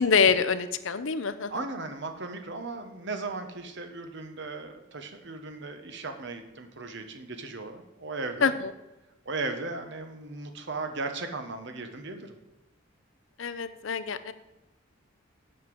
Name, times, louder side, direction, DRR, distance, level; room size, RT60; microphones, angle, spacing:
voice 1, 0.0-1.5 8.4-8.7 13.4-14.3, left 5 dB, 70° left, 12 dB, 0.6 m, -25 dB
voice 2, 1.5-8.5 9.2-12.4, right 3 dB, 60° right, 7 dB, 1.2 m, -36 dB
7.8 x 5.8 x 7.8 m, 0.98 s
head